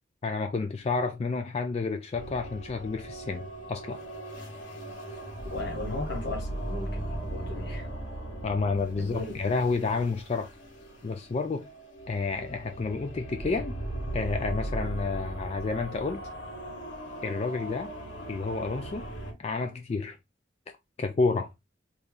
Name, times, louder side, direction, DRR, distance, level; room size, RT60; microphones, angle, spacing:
voice 1, 0.2-4.0 8.4-10.5 11.0-11.7 12.1-13.7 14.1-16.2 17.2-17.9 18.3-19.1 19.4-20.2 21.0-21.5, left 4 dB, 35° left, 0.3 m, -30 dB
sound 1, 2.1-19.3, right 1 dB, 80° left, 1.7 m, -38 dB
voice 2, 5.5-7.8 9.0-9.3, left 2 dB, 55° left, 1.0 m, -36 dB
3.0 x 2.7 x 3.5 m
head